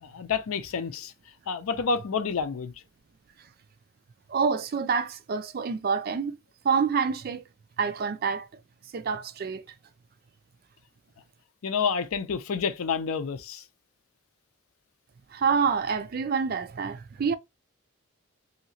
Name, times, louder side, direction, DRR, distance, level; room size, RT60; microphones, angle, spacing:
voice 1, 0.0-1.1 1.5-2.7 11.6-13.6, left 5 dB, 80° left, 0.5 m, -29 dB
voice 2, 4.3-6.4 6.6-7.4 7.8-8.5 8.9-9.6 15.3-17.3, right 5 dB, 45° right, 0.3 m, -27 dB
2.8 x 2.7 x 2.7 m
head